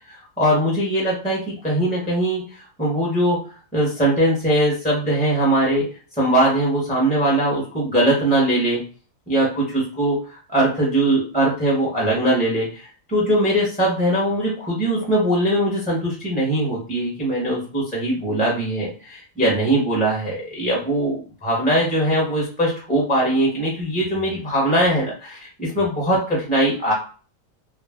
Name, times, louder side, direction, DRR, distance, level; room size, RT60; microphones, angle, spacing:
voice 1, 0.4-2.4 2.8-3.4 3.7-5.9 6.2-8.8 9.3-10.2 10.5-26.9, right 1 dB, 10° left, -5 dB, 0.6 m, -21 dB
2.4 x 2.1 x 3.4 m, 0.38 s
omnidirectional pair, 1.4 m